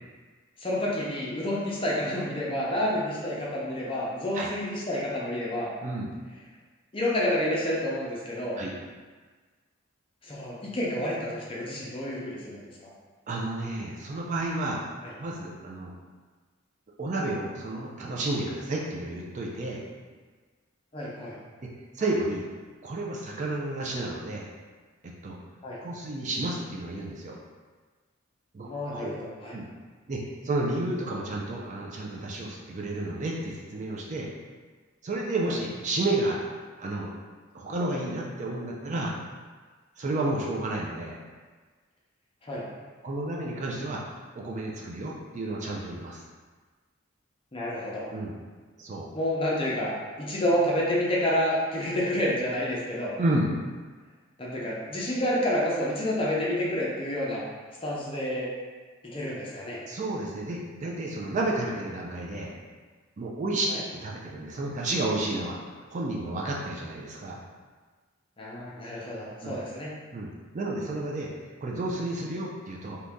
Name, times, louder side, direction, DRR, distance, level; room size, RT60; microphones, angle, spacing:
voice 1, 0.6-5.7 6.9-8.6 10.2-12.6 15.0-15.1 20.9-21.4 25.6-25.8 28.6-29.6 42.4-42.6 47.5-48.1 49.1-53.1 54.4-57.4 57.8-58.5 59.1-59.8 63.7-63.8 68.4-69.9, left 1 dB, 25° left, -5 dB, 0.6 m, -29 dB
voice 2, 5.8-6.1 8.6-8.7 13.3-14.8 15.2-15.9 17.0-19.8 21.9-22.4 22.8-24.5 25.0-25.4 25.8-27.4 28.5-29.1 29.5-29.7 30.1-34.3 35.0-36.4 36.8-37.1 37.5-39.1 40.0-41.2 43.0-46.2 48.1-48.3 48.8-49.1 53.2-53.5 59.9-62.5 63.2-65.6 65.9-67.4 69.4-69.6 70.1-71.3 71.6-73.0, right 2 dB, 40° right, -3 dB, 0.4 m, -31 dB
2.8 x 2.6 x 3.4 m, 1.4 s
head